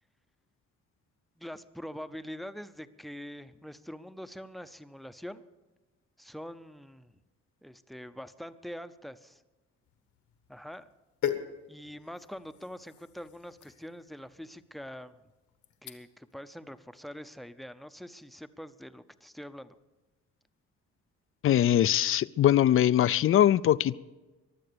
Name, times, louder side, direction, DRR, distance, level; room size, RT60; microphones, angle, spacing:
voice 1, 1.4-5.5 6.2-7.1 7.6-9.4 10.5-10.9 11.7-15.2 15.8-19.8, equal, ahead, 0.6 m, -44 dB
sound 1, 9.8-16.3 16.7-17.0, left 9 dB, 80° left, 1.4 m, -41 dB
voice 2, 21.4-24.0, left 11 dB, 45° left, 0.4 m, -22 dB
22.5 x 7.7 x 6.9 m
cardioid pair, 105°, 29 cm